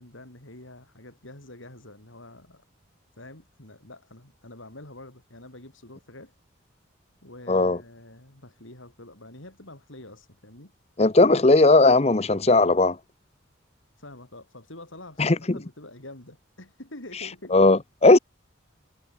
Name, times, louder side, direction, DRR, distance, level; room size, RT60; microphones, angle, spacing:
voice 1, 0.0-2.6 3.2-6.3 7.2-10.7 11.2-11.5 14.0-17.6, left 1 dB, 80° left, 5.9 m, -46 dB
voice 2, 7.5-7.8 11.0-13.0 15.2-15.6 17.5-18.2, left 2 dB, 30° left, 0.8 m, -17 dB
head